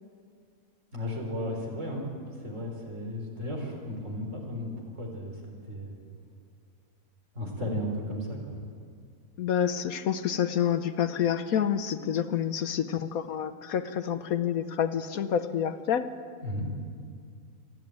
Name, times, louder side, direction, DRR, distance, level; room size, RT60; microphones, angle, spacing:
voice 1, 0.9-2.1 2.4-4.7 5.0-5.9 7.4-8.6 16.4-16.7, left 1 dB, 50° right, 1 dB, 4.4 m, -34 dB
voice 2, 9.4-16.1, left 9 dB, 70° left, 11 dB, 1.2 m, -28 dB
27.0 x 10.5 x 9.3 m, 2.1 s
omnidirectional pair, 1.6 m